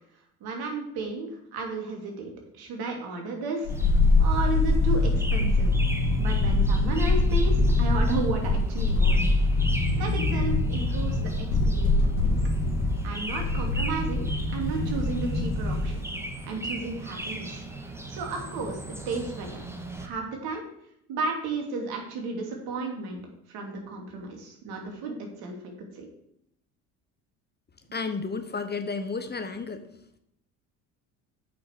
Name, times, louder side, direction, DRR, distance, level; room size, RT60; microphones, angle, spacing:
voice 1, 0.4-3.7 4.2-5.7 6.2-9.3 10.0-12.4 13.0-14.3 14.5-16.0 16.4-17.6 18.1-19.6 20.0-20.6 21.1-23.2 23.5-26.1, right 3 dB, 65° right, 1 dB, 3.0 m, -33 dB
sound 1, 3.6-16.0 16.3-16.4, left 2 dB, 85° left, 2.5 m, -24 dB
sound 2, 3.7-20.1, right 1 dB, 5° right, 1.7 m, -38 dB
voice 2, 27.9-29.9, left 4 dB, 25° left, 10 dB, 1.2 m, -32 dB
8.6 x 6.0 x 6.6 m, 0.75 s
hypercardioid pair, 65°, 40 cm